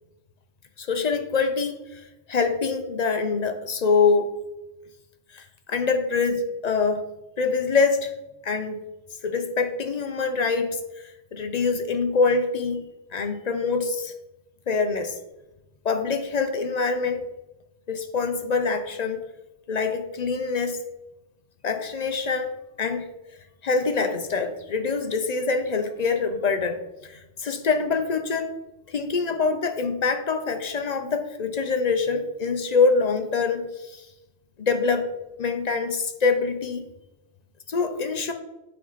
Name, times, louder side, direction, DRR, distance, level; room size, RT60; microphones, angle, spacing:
voice 1, 0.8-4.4 5.3-7.0 7.4-8.1 8.4-8.8 9.2-12.8 13.1-14.1 14.7-15.2 15.8-17.2 17.9-19.2 19.7-20.8 21.6-22.5 22.8-23.0 23.6-28.5 28.9-34.1 34.6-35.1 35.4-36.8 37.7-38.3, left 4 dB, 45° left, 7 dB, 0.6 m, -25 dB
8.5 x 4.3 x 4.0 m, 1.0 s
omnidirectional pair, 1.2 m